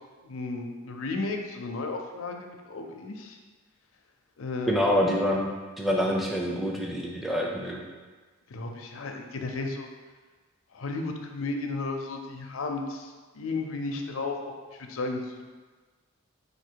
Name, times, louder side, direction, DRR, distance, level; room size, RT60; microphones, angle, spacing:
voice 1, 0.2-3.4 4.4-4.8 8.5-9.9 10.7-15.4, left 3 dB, 75° left, 3 dB, 0.5 m, -34 dB
voice 2, 4.7-7.8, equal, ahead, -2 dB, 0.5 m, -26 dB
4.2 x 2.7 x 4.6 m, 1.4 s
head